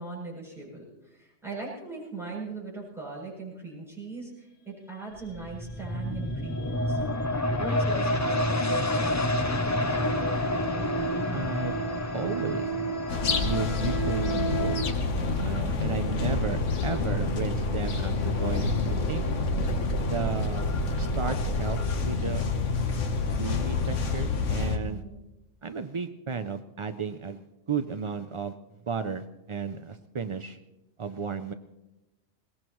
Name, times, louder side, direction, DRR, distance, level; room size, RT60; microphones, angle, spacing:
voice 1, 0.0-7.0 7.6-10.0 24.9-25.2, right 3 dB, ahead, -6 dB, 7.7 m, -40 dB
sound 1, 5.2-18.5 18.9-19.0, left 1 dB, 25° left, 0.4 m, -30 dB
sound 2, 5.8-14.8, right 3 dB, 50° left, 2.2 m, -35 dB
voice 2, 11.3-11.8 12.1-12.7 13.4-19.2 20.0-20.7 21.0-21.8 22.1-22.4 23.4-25.0 25.6-28.6 28.9-30.6 31.0-31.5, right 5 dB, 50° right, 9 dB, 0.3 m, -33 dB
sound 3, 13.1-24.8, left 3 dB, 70° left, 1.4 m, -28 dB
22.0 x 19.5 x 3.1 m, 0.99 s
omnidirectional pair, 1.3 m